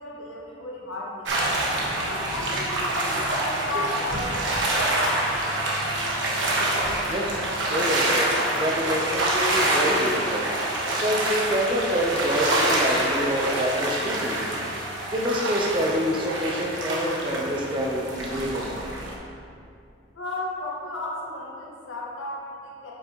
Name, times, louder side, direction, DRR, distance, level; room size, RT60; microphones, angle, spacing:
voice 1, 0.0-1.4 2.1-5.3 20.1-22.9, left 2 dB, 90° left, -4 dB, 1.5 m, -34 dB
sound 1, 1.3-19.1, right 1 dB, 75° right, 1.2 m, -26 dB
voice 2, 7.1-7.4 7.7-8.3 8.5-10.5 11.0-14.6 15.1-18.9, equal, 25° right, -1 dB, 0.7 m, -27 dB
8.7 x 5.8 x 3.0 m, 2.4 s
head